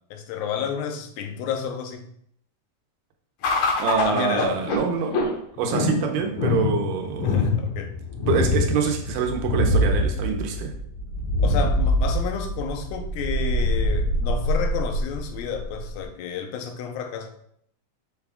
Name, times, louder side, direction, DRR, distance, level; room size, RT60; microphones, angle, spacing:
voice 1, 0.1-2.1 4.0-4.6 7.2-7.9 11.4-17.3, left 7 dB, 90° left, 5 dB, 2.5 m, -31 dB
sound 1, 3.4-16.0, left 1 dB, 65° left, 2.3 m, -24 dB
voice 2, 3.8-5.2 5.6-7.4 8.3-10.7, right 6 dB, 85° right, 3 dB, 2.4 m, -25 dB
7.0 x 6.7 x 2.3 m, 0.68 s
omnidirectional pair, 3.9 m